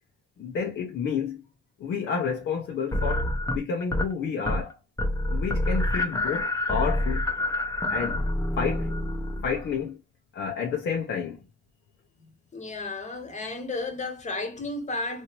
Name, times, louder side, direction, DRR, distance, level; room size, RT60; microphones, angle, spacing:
voice 1, 0.4-1.4 1.8-4.8 5.3-7.3 7.9-8.2 8.6-9.0 9.4-10.0 10.3-11.4, left 6 dB, 65° left, 0.8 m, -30 dB
sound 1, 2.9-4.1 4.4-4.7 5.0-9.7, left 1 dB, 15° left, 0.8 m, -27 dB
voice 2, 12.5-15.2, left 3 dB, 35° left, 1.2 m, -33 dB
3.0 x 2.7 x 3.0 m
cardioid pair, 90°, 20 cm